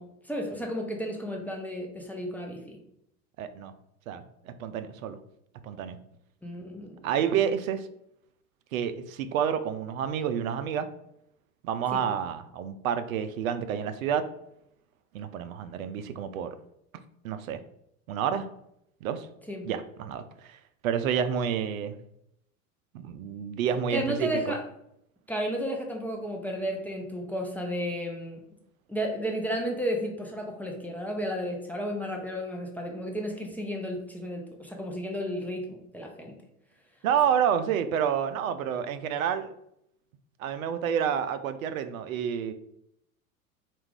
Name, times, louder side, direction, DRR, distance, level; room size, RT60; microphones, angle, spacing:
voice 1, 0.0-2.8 6.4-7.1 11.9-12.0 19.5-19.7 23.9-24.6 25.3-28.4 28.9-36.4, equal, 5° left, 1 dB, 0.5 m, -33 dB
voice 2, 3.4-3.7 4.1-5.2 5.6-6.0 7.0-7.9 8.7-10.9 11.6-14.3 15.1-16.6 17.2-17.6 18.1-18.5 19.0-19.3 19.6-22.0 22.9-24.5 37.0-39.5 40.4-42.5, right 8 dB, 70° right, 11 dB, 0.5 m, -29 dB
4.4 x 2.5 x 3.6 m, 0.75 s
hypercardioid pair, 85°, 43 cm